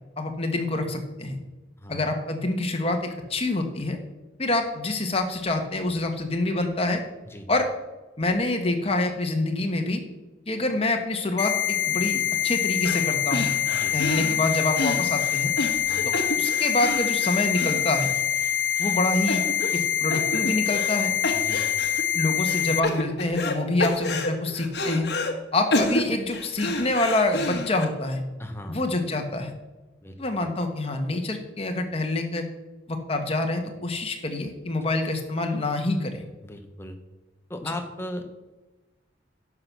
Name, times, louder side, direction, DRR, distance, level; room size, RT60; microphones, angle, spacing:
voice 1, 0.2-1.4 1.9-4.0 4.4-7.0 7.5-7.7 8.2-10.0 10.5-11.5 11.8-13.5 13.9-15.5 16.0-18.1 18.8-19.4 19.7-21.1 22.1-25.1 25.5-28.2 28.7-29.5 30.2-32.4 32.9-36.2 37.6-37.7, left 2 dB, 30° left, 4 dB, 1.3 m, -26 dB
sound 1, 11.4-22.8, left 11 dB, 75° left, 0.4 m, -25 dB
sound 2, 12.8-13.0 13.3-18.5 18.8-18.9 19.3-19.8 20.1-21.0 21.2-22.0 22.5-23.5 23.8-25.3 25.7-27.8, left 2 dB, 60° left, 1.3 m, -29 dB
voice 2, 21.3-21.7 28.4-28.8 30.0-30.5 36.4-37.0 37.5-38.2, left 1 dB, 15° left, 5 dB, 1.0 m, -37 dB
11.0 x 6.1 x 6.1 m, 1.1 s
head